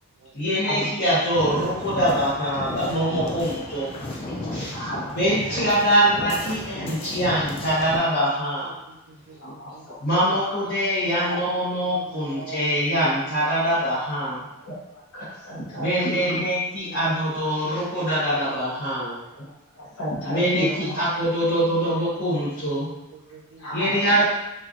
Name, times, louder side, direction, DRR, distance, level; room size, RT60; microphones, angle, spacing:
voice 1, 0.3-4.2 4.5-4.9 5.1-8.7 10.0-14.4 15.7-19.2 20.2-22.9 23.7-24.2, equal, 45° left, -12 dB, 0.9 m, -23 dB
sound 1, 1.3-8.0, left 2 dB, 25° left, 0.3 m, -34 dB
voice 2, 3.8-4.9 6.2-7.3 7.6-7.7 8.0-8.1 8.7-9.9 11.1-11.7 12.0-13.1 13.7-13.8 15.8-16.3 16.6-17.5 17.8-17.9 18.5-18.6 18.9-19.0 20.4-20.7 21.2-21.5 22.7-22.8 23.1-23.8, right 4 dB, 70° right, 2 dB, 0.4 m, -44 dB
voice 3, 4.7-5.1 5.5-5.6 6.9-7.0 9.4-10.0 10.3-10.5 11.3-11.4 14.6-16.4 19.3-20.9 21.5-21.6 23.6-24.2, equal, 80° left, -6 dB, 0.9 m, -32 dB
3.1 x 2.4 x 2.4 m, 0.95 s
head